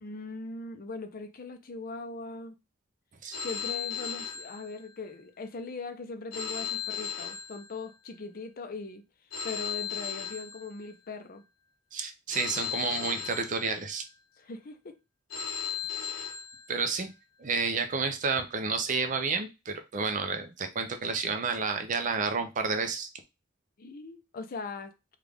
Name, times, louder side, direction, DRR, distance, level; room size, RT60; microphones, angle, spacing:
voice 1, 0.0-2.5 3.4-9.0 9.4-11.4 14.4-15.0 15.9-16.0 23.8-24.9, left 3 dB, 50° left, 0.5 m, -40 dB
Telephone, 3.3-5.2 6.3-8.2 9.3-11.2 12.3-14.2 15.3-17.2, left 8 dB, 80° left, 0.9 m, -37 dB
voice 2, 11.9-14.0 16.7-17.1 17.4-23.1, right 4 dB, 40° right, 0.5 m, -30 dB
3.5 x 2.4 x 3.4 m
head